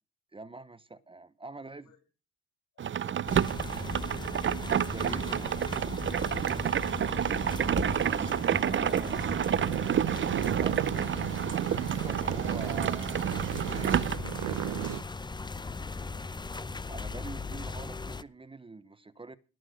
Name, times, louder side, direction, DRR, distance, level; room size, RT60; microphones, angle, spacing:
voice 1, 0.3-1.9 4.9-5.5 8.1-9.4 11.6-15.0 16.9-19.4, right 3 dB, 15° right, 0.9 m, -45 dB
voice 2, 2.7-3.2 3.9-4.1, left 8 dB, 80° left, 3.7 m, -61 dB
sound 1, 2.8-14.2, right 9 dB, 40° right, 0.6 m, -29 dB
sound 2, 3.3-18.2, left 4 dB, 15° left, 0.6 m, -38 dB
sound 3, 9.4-15.0, right 13 dB, 90° right, 0.9 m, -34 dB
18.0 x 6.2 x 6.3 m
cardioid pair, 90°, 30 cm